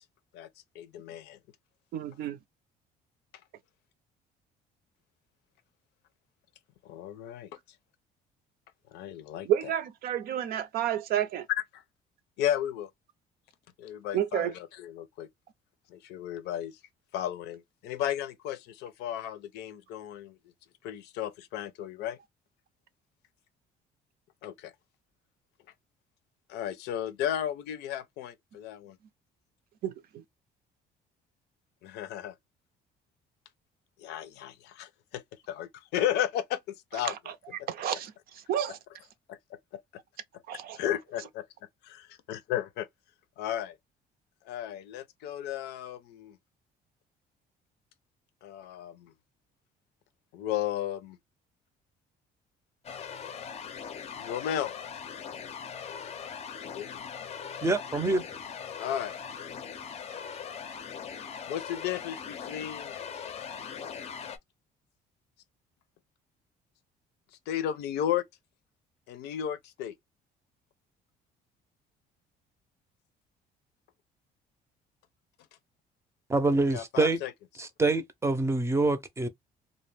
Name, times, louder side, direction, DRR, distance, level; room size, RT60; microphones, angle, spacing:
voice 1, 0.7-1.4 6.8-7.5 8.9-9.7 11.7-11.8 12.4-12.9 13.8-15.3 15.9-16.8 17.1-20.4 20.8-22.2 24.4-24.7 26.5-29.0 31.8-32.3 34.0-37.1 37.6-37.7 39.3-39.4 39.7-39.8 40.8-41.5 41.8-42.9 43.4-43.8 44.5-46.4 48.4-49.1 50.3-51.2 54.2-54.7 56.6-56.9 58.8-59.2 61.5-62.9 67.5-68.3 69.1-70.0 76.7-77.3, left 11 dB, 85° left, 0.6 m, -34 dB
voice 2, 1.9-2.4 9.4-11.5 14.1-14.5 29.8-30.2 37.0-37.3 37.7-38.8 40.5-40.8, right 10 dB, 65° right, 0.5 m, -30 dB
sound 1, 52.8-64.4, left 7 dB, 40° left, 0.5 m, -40 dB
voice 3, 57.6-58.2 76.3-77.2 77.6-79.3, right 2 dB, 15° right, 0.5 m, -26 dB
2.3 x 2.1 x 3.2 m
cardioid pair, 110°, 17 cm